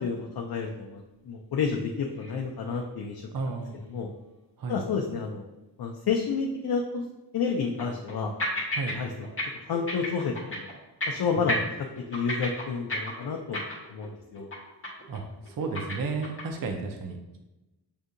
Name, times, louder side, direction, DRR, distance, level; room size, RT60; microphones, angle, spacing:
voice 1, 0.0-3.2 3.9-4.1 4.7-5.4 5.8-7.1 7.3-8.3 8.9-9.3 9.7-10.7 11.1-11.6 12.1-13.6 13.9-14.5, left 5 dB, 65° left, 1 dB, 0.5 m, -30 dB
sound 1, 2.2-2.4 2.7-2.8 3.4-3.5 6.7-6.8 7.4-8.1 8.4-9.0 9.2-9.4 9.7-10.7 11.0-11.2 11.5-14.1 14.3-14.6 14.8-15.2 15.4-16.6, left 1 dB, 30° left, 1.0 m, -32 dB
voice 2, 3.3-3.8 4.6-4.8 8.7-8.9 11.4-11.5 15.1-15.2 15.6-17.4, right 4 dB, 55° right, 4 dB, 0.5 m, -33 dB
6.6 x 2.7 x 2.5 m, 1.0 s
wide cardioid pair, 115°, 40 cm